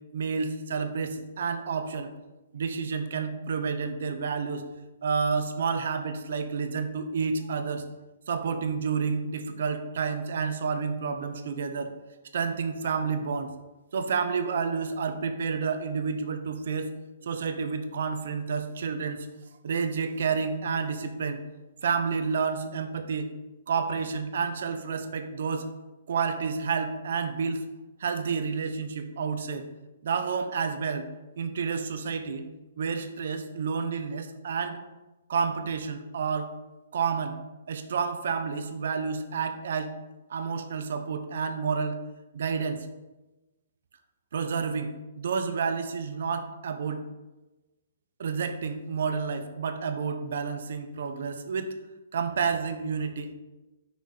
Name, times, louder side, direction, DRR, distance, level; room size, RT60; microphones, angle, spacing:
voice 1, 0.1-2.1 2.5-4.6 5.0-7.8 8.3-11.9 12.3-13.5 13.9-16.9 17.2-19.3 19.6-21.4 21.8-23.3 23.7-25.6 26.1-27.6 28.0-29.7 30.0-31.1 31.4-32.5 32.8-34.8 35.3-36.5 36.9-37.4 37.7-39.9 40.3-42.0 42.3-42.9 44.3-44.9 45.2-47.0 48.2-51.7 52.1-53.3, right 5 dB, 60° right, 8 dB, 0.9 m, -30 dB
8.5 x 6.1 x 4.2 m, 1.1 s
hypercardioid pair, 170°, 0 cm